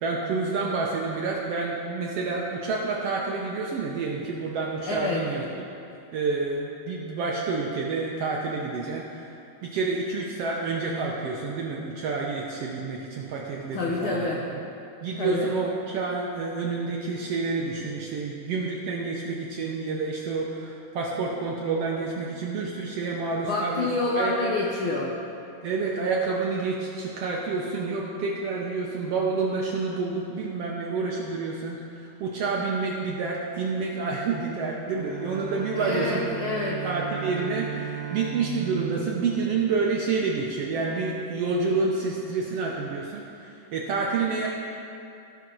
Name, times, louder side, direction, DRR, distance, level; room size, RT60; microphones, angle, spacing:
voice 1, 0.0-5.4 6.1-9.3 9.6-14.6 15.0-24.4 25.6-36.3 36.8-44.5, right 4 dB, 70° right, -2 dB, 1.5 m, -29 dB
voice 2, 4.8-5.2 13.7-14.4 15.2-15.5 23.4-25.1 35.7-36.8, left 3 dB, 80° left, -3 dB, 1.1 m, -27 dB
Bowed string instrument, 34.8-40.1, right 9 dB, 50° right, 3.2 m, -36 dB
17.0 x 5.8 x 3.9 m, 2.7 s
omnidirectional pair, 3.6 m